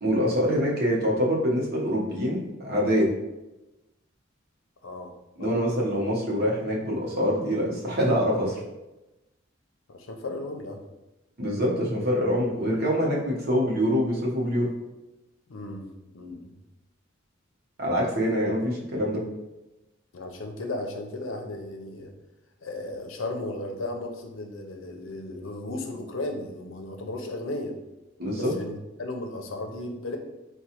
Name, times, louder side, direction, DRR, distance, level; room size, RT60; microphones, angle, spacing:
voice 1, 0.0-3.1 5.4-8.6 11.4-14.7 17.8-19.2 28.2-28.5, equal, 55° right, -3 dB, 0.9 m, -25 dB
voice 2, 4.8-5.1 5.4-5.6 9.9-10.8 15.5-15.8 16.1-16.5 20.1-22.1 22.6-27.7 28.3-30.2, left 2 dB, 85° left, 3 dB, 0.6 m, -35 dB
4.6 x 2.3 x 2.8 m, 0.99 s
head